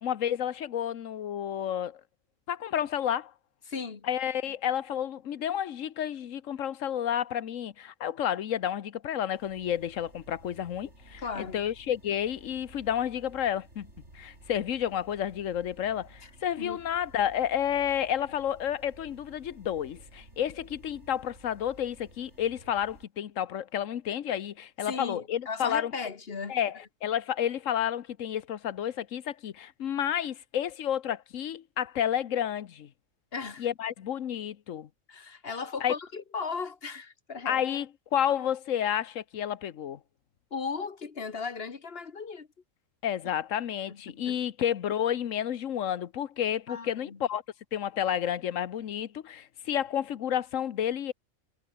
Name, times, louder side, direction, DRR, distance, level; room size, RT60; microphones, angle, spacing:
voice 1, 0.0-2.0 2.5-3.3 4.1-13.9 14.1-25.9 26.5-32.9 33.6-34.9 35.8-35.9 37.4-40.0 43.0-47.4 47.7-51.1, left 10 dB, 75° left, 1.3 m, -30 dB
voice 2, 3.7-4.1 11.2-11.7 16.2-16.3 16.6-16.8 24.9-26.6 33.3-33.7 35.1-37.6 40.5-42.5 43.9-44.4 46.7-47.2, left 5 dB, 50° left, 1.8 m, -36 dB
sound 1, 9.3-23.0, right 2 dB, 60° right, 6.3 m, -54 dB
omnidirectional pair, 1.3 m